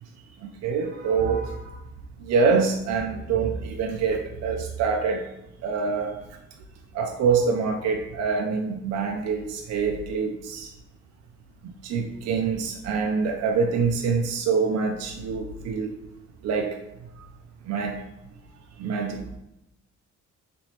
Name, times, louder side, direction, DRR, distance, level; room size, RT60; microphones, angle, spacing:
voice 1, 0.6-1.8 2.2-5.2 5.6-6.2 6.9-10.7 11.8-15.9 16.4-16.8 17.7-18.0 18.8-19.4, right 5 dB, 60° right, 2 dB, 0.4 m, -25 dB
3.1 x 3.0 x 2.8 m, 0.89 s
cardioid pair, 90°, 30 cm